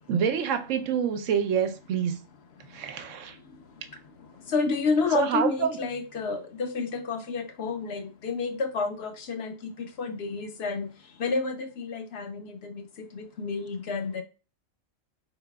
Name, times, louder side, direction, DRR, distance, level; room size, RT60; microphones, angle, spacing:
voice 1, 0.1-2.2 2.7-3.4 5.1-5.8, right 7 dB, 80° right, 1.0 m, -26 dB
voice 2, 4.5-10.9 11.2-12.8 13.1-14.2, left 4 dB, 60° left, 0.9 m, -30 dB
4.8 x 4.0 x 2.2 m
omnidirectional pair, 1.3 m